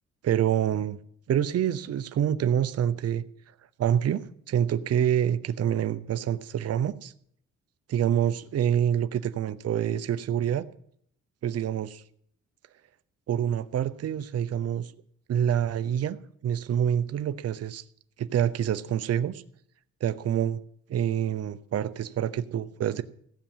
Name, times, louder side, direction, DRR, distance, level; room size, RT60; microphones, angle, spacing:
voice 1, 0.2-1.0 1.3-3.2 3.8-7.1 7.9-10.6 11.4-12.0 13.3-14.9 15.3-16.2 16.4-17.8 18.2-19.4 20.0-20.6 20.9-23.0, right 9 dB, 55° right, 0.8 m, -26 dB
15.5 x 8.5 x 7.4 m
cardioid pair, 90°, 30 cm